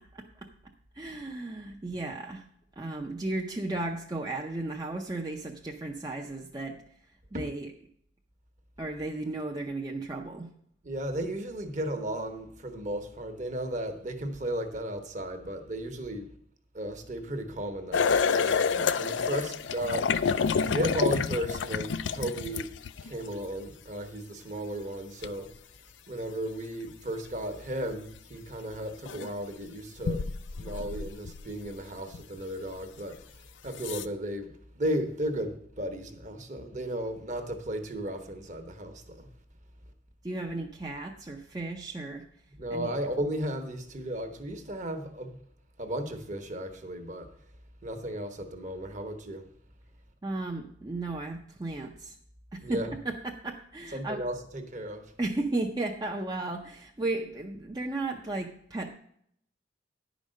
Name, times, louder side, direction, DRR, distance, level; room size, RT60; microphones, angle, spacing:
voice 1, 0.1-0.5 0.9-2.4 2.8-6.8 7.3-7.7 8.8-10.5 40.2-42.2 42.7-42.9 50.2-52.2 52.5-54.2 55.2-59.0, right 2 dB, 20° right, 0.6 m, -34 dB
voice 2, 10.8-16.3 16.7-20.1 20.7-22.7 23.0-25.5 26.1-30.3 30.5-33.2 33.6-39.3 42.5-45.4 45.8-47.3 47.8-49.4 52.6-52.9 53.9-55.0, right 1 dB, 40° right, 1.1 m, -35 dB
sound 1, 17.9-23.2 25.2-25.3 28.2-28.3 29.1-29.3 30.0-31.7 32.1-32.2 33.1-33.2 33.7-34.1, left 5 dB, 75° left, 0.4 m, -28 dB
10.5 x 5.1 x 6.4 m
head